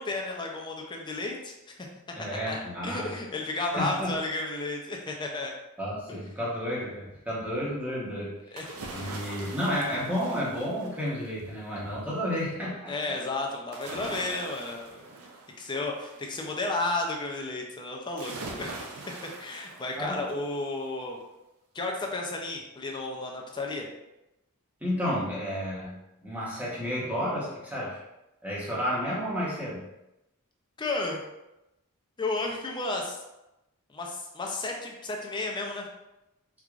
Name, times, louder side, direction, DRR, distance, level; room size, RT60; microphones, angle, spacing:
voice 1, 0.0-1.5 1.8-1.9 2.5-5.5 8.5-9.2 12.9-15.0 15.6-19.0 19.4-21.2 21.7-23.9 30.8-31.2 32.2-33.2 33.9-35.8, left 2 dB, 20° left, 0 dB, 0.4 m, -33 dB
voice 2, 2.1-3.1 3.8-4.1 5.8-8.6 8.9-12.9 20.0-20.3 24.8-26.0 26.2-28.0 28.4-29.8, equal, 5° right, -7 dB, 0.9 m, -31 dB
sound 1, 8.6-11.4 13.7-16.3 18.2-20.5 20.9-21.0, right 3 dB, 70° right, 0.5 m, -42 dB
4.6 x 2.4 x 2.4 m, 0.92 s
head